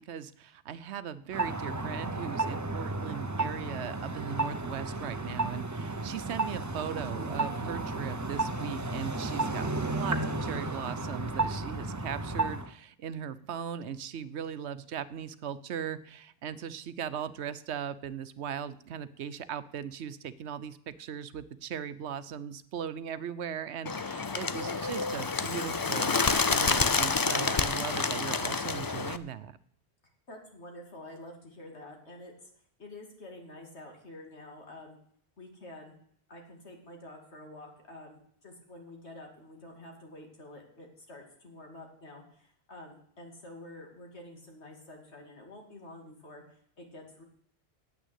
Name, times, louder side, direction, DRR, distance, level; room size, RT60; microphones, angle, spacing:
voice 1, 0.0-29.6, right 8 dB, 85° right, 14 dB, 1.0 m, -38 dB
sound 1, 1.3-12.7, right 2 dB, 20° right, 0.6 m, -33 dB
Bird, 23.9-29.2, left 4 dB, 35° left, 0.3 m, -28 dB
voice 2, 30.3-32.5 32.8-35.0 35.4-36.0 36.3-47.2, left 1 dB, 85° left, 2 dB, 2.8 m, -48 dB
9.0 x 8.3 x 8.1 m, 0.66 s
omnidirectional pair, 1.1 m